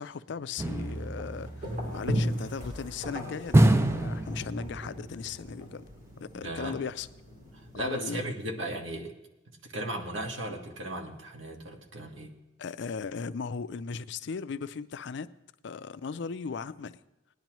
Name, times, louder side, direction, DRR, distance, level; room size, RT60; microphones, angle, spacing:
voice 1, 0.0-5.8 6.2-7.1 7.7-8.2 12.6-15.3 15.6-17.0, left 5 dB, 65° left, 0.4 m, -37 dB
sound 1, 0.6-2.3 3.5-5.1 5.3-5.4, right 1 dB, 15° right, 0.4 m, -26 dB
sound 2, 0.6-7.8, equal, 50° right, 4.1 m, -37 dB
voice 2, 6.3-6.8 7.7-9.1 9.6-12.3, right 1 dB, 90° right, 1.6 m, -36 dB
19.0 x 10.5 x 3.0 m
head